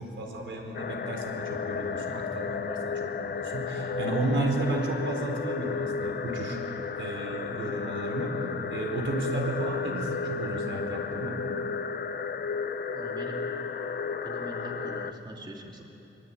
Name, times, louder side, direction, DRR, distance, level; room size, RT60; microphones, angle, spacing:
voice 1, 0.0-8.4 8.7-11.4, right 2 dB, 70° right, 2 dB, 4.2 m, -33 dB
sound 1, 0.7-15.1, left 5 dB, 55° left, 1.0 m, -33 dB
voice 2, 12.9-13.4 14.2-15.8, right 1 dB, 20° right, -1 dB, 2.8 m, -42 dB
25.0 x 24.0 x 9.1 m, 2.9 s
wide cardioid pair, 155°, 20 cm